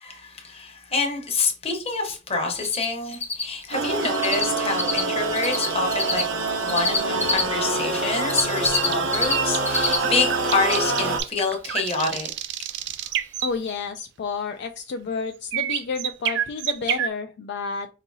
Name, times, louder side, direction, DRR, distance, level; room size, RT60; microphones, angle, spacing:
voice 1, 0.0-6.3 6.6-12.3, left 3 dB, 30° left, 1.0 m, -27 dB
Cricket, 2.6-2.9 3.1-7.4 8.0-9.3 9.6-10.0 10.3-10.4 12.9-13.0 13.4-13.5 13.7-13.8, left 3 dB, 10° left, 0.6 m, -24 dB
sound 1, 3.7-11.2, right 3 dB, 85° right, 0.7 m, -26 dB
sound 2, 8.7-13.5 15.5-17.1, right 11 dB, 60° right, 0.4 m, -28 dB
voice 2, 13.4-17.9, left 5 dB, 60° left, 0.3 m, -30 dB
5.1 x 2.7 x 2.7 m
head